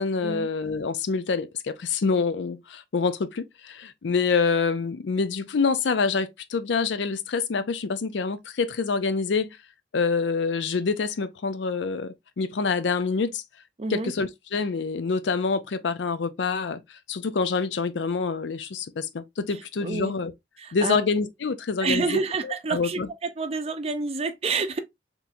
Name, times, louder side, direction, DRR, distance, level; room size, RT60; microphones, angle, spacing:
voice 1, 0.0-9.6 9.9-13.4 13.9-16.8 17.1-20.3 20.7-23.1, left 4 dB, 80° left, 0.5 m, -26 dB
voice 2, 13.8-14.1 19.8-20.1 20.6-21.1 21.8-23.0 23.4-24.8, right 4 dB, 35° right, 0.5 m, -28 dB
3.6 x 2.9 x 2.5 m
head